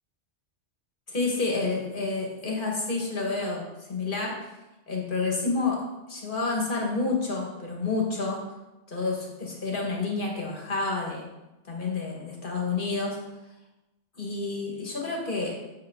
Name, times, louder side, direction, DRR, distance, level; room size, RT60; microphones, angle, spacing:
voice 1, 1.1-4.6 4.9-5.8 6.1-8.4 8.9-11.2 11.6-13.2 14.1-15.6, left 3 dB, 45° left, -2 dB, 1.9 m, -29 dB
7.6 x 7.0 x 3.9 m, 1.0 s
omnidirectional pair, 1.2 m